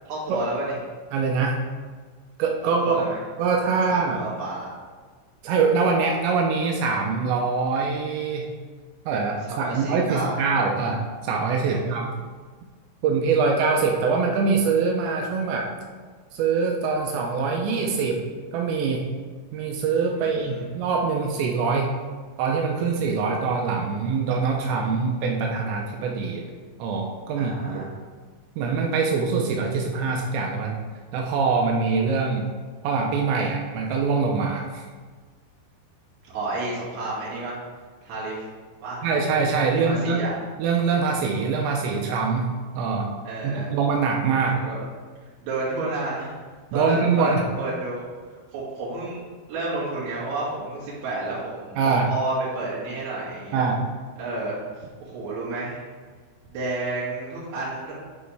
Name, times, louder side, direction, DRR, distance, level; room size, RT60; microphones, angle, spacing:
voice 1, 0.1-0.7 2.6-3.2 3.9-4.7 9.5-10.4 11.6-11.8 20.1-20.7 27.3-27.9 36.2-37.6 38.0-38.5 38.8-39.1 39.7-40.3 43.2-43.7 44.7-44.8 45.4-46.3 46.7-48.0 48.5-53.6 54.2-55.8 56.5-58.0, right 2 dB, 60° right, -9 dB, 4.2 m, -31 dB
voice 2, 1.1-1.6 2.4-3.1 3.4-4.2 5.4-8.5 9.1-12.1 13.0-15.7 16.3-18.2 18.5-19.1 19.5-21.9 22.4-26.4 26.8-27.9 28.6-30.8 31.1-32.5 32.8-34.9 39.0-40.2 40.6-43.1 43.4-44.7 46.7-47.4 51.8-52.1 53.5-53.8, right 4 dB, 80° right, 1 dB, 2.8 m, -24 dB
11.0 x 4.7 x 3.4 m, 1.5 s
omnidirectional pair, 5.5 m